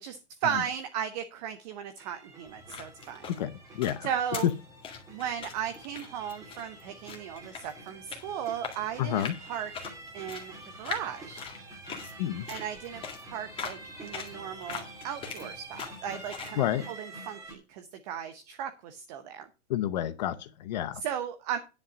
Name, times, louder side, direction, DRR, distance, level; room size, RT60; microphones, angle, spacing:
voice 1, 0.0-3.3 4.0-4.5 5.1-9.7 10.1-11.4 12.5-19.5 21.0-21.6, right 9 dB, 35° right, 8 dB, 1.0 m, -36 dB
sound 1, 2.0-17.5, right 2 dB, 10° right, 2.2 m, -48 dB
sound 2, 2.4-16.6, left 6 dB, 15° left, 2.0 m, -43 dB
voice 2, 3.3-4.1 9.0-9.4 12.2-12.5 16.6-16.8 19.7-21.0, left 11 dB, 35° left, 13 dB, 0.7 m, -30 dB
10.0 x 5.7 x 6.1 m, 0.30 s
hypercardioid pair, 155°, 37 cm